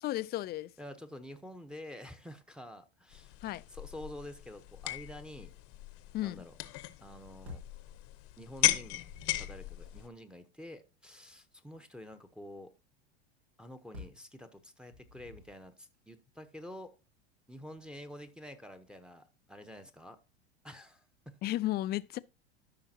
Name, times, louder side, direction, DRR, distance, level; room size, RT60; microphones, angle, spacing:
voice 1, 0.0-0.7 3.4-3.6 6.1-6.4 21.4-22.2, left 15 dB, 30° left, 0.4 m, -34 dB
voice 2, 0.8-3.4 3.7-5.5 6.2-6.5 7.0-7.6 8.4-9.0 9.3-12.7 13.6-16.9 17.5-20.2 20.6-21.4, left 1 dB, 5° right, 0.9 m, -48 dB
sound 1, 3.1-10.1, left 16 dB, 45° left, 0.9 m, -37 dB
sound 2, 7.4-7.8 8.7-9.8 13.9-14.3 14.9-15.6, left 2 dB, 85° right, 3.1 m, -49 dB
13.5 x 5.7 x 2.8 m
hypercardioid pair, 95°, 32 cm